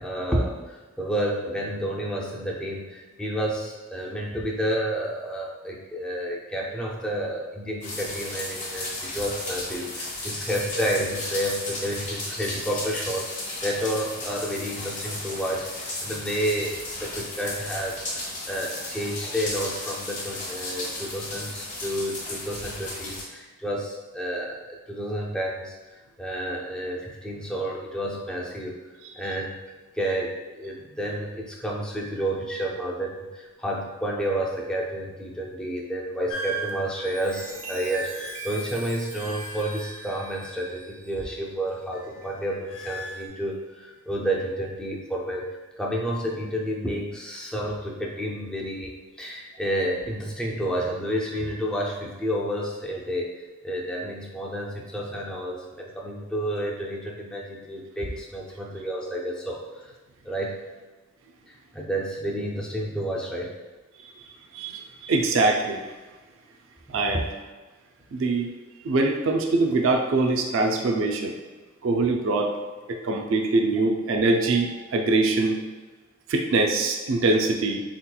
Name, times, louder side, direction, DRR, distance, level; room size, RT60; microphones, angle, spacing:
voice 1, 0.0-13.3 13.6-25.8 26.2-28.8 29.2-29.6 30.0-59.9 60.2-60.7 61.5-63.6, right 1 dB, 5° left, -3 dB, 0.4 m, -30 dB
sound 1, 7.8-23.2, left 2 dB, 35° left, 0.7 m, -34 dB
sound 2, 36.3-41.0 41.3-43.3, right 1 dB, 75° left, 0.5 m, -39 dB
Chime, 36.9-42.8 43.3-43.6, right 2 dB, 80° right, 1.1 m, -42 dB
voice 2, 64.5-65.9 66.9-67.3 68.1-68.5 68.8-71.3 71.8-72.5 72.9-75.6 76.3-77.8, right 3 dB, 65° right, 2 dB, 0.4 m, -23 dB
4.1 x 2.9 x 2.2 m, 1.3 s
head